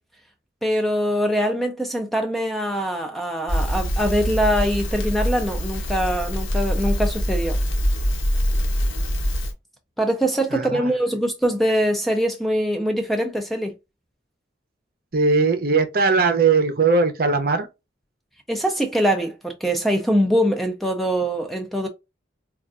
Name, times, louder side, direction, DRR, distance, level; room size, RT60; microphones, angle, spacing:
voice 1, 0.6-7.6 10.0-13.7 18.5-21.9, equal, ahead, 0.4 m, -23 dB
Crackle, 3.5-9.5, equal, 85° left, 1.0 m, -24 dB
voice 2, 10.5-10.9 15.1-17.7, right 4 dB, 50° right, 0.6 m, -19 dB
4.4 x 2.4 x 2.4 m
head